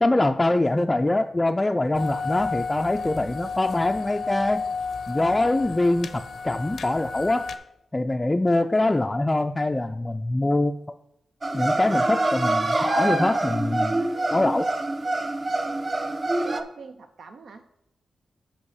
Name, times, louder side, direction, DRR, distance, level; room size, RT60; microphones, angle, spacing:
voice 1, 0.0-4.6 5.1-7.5 7.9-10.7 11.5-14.0 14.3-14.7, left 2 dB, 20° left, 4 dB, 0.3 m, -23 dB
sound 1, 1.9-7.6, left 4 dB, 80° left, 0.6 m, -32 dB
sound 2, 11.4-16.6, right 2 dB, 40° right, 0.7 m, -25 dB
voice 2, 16.4-17.6, right 4 dB, 75° right, 7 dB, 0.5 m, -42 dB
7.1 x 5.2 x 4.8 m, 0.83 s
cardioid pair, 70°, 0 cm